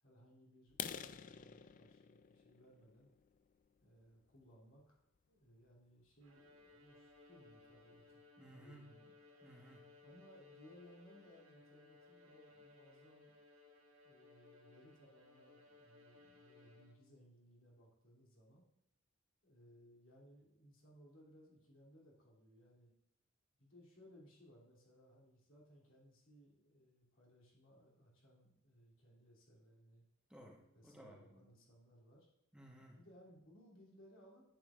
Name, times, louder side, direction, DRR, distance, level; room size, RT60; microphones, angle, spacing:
voice 1, 0.0-3.1 3.8-5.0 5.3-9.1 10.0-13.3 14.0-18.7 19.4-22.9 23.6-30.0 30.7-32.3 32.9-34.5, equal, 70° left, -4 dB, 2.8 m, -64 dB
sound 1, 0.7-4.4 5.0-5.2 5.6-5.7 6.1-6.3 6.6-6.7 7.2-7.3 7.5-8.0, left 8 dB, 40° left, 0.3 m, -50 dB
Bowed string instrument, 6.2-17.2, left 3 dB, 75° right, 1.4 m, -63 dB
voice 2, 8.4-9.0 9.4-9.9 30.3-31.5 32.5-33.1, right 1 dB, 5° right, -1 dB, 1.1 m, -58 dB
10.0 x 8.6 x 2.5 m, 0.83 s
head